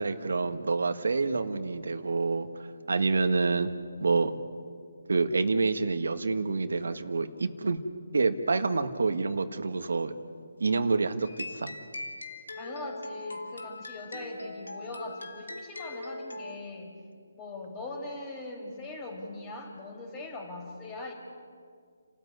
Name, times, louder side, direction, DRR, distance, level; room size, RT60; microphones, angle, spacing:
voice 1, 0.0-2.5 2.9-3.7 4.0-4.3 5.1-7.8 8.1-10.1 10.6-11.7, right 4 dB, 75° right, 8 dB, 1.6 m, -27 dB
sound 1, 11.2-16.5, left 2 dB, 85° left, 3.0 m, -41 dB
voice 2, 12.5-16.9 17.3-21.1, left 2 dB, 20° left, 2 dB, 4.6 m, -40 dB
30.0 x 13.5 x 9.7 m, 2.1 s
hypercardioid pair, 160°, 0 cm